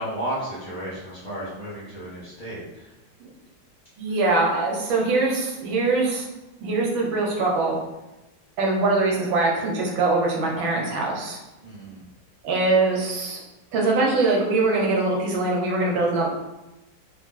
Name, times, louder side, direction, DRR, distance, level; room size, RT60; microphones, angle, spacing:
voice 1, 0.0-2.9 11.6-12.0, right 1 dB, 25° left, -10 dB, 1.5 m, -33 dB
voice 2, 4.0-6.3 6.6-7.7 8.6-11.4 12.4-13.4 13.7-16.3, right 3 dB, 80° right, -2 dB, 1.7 m, -22 dB
3.9 x 3.3 x 3.7 m, 0.98 s
omnidirectional pair, 2.1 m